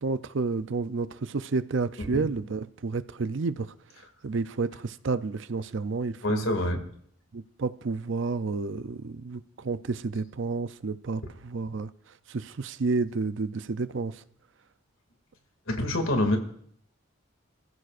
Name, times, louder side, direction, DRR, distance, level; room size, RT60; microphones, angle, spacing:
voice 1, 0.0-3.7 4.2-6.5 7.3-11.9 12.3-14.2, right 4 dB, 60° right, 0.5 m, -30 dB
voice 2, 6.2-6.8 15.7-16.4, left 1 dB, 70° left, 2.4 m, -26 dB
27.5 x 15.0 x 2.5 m
head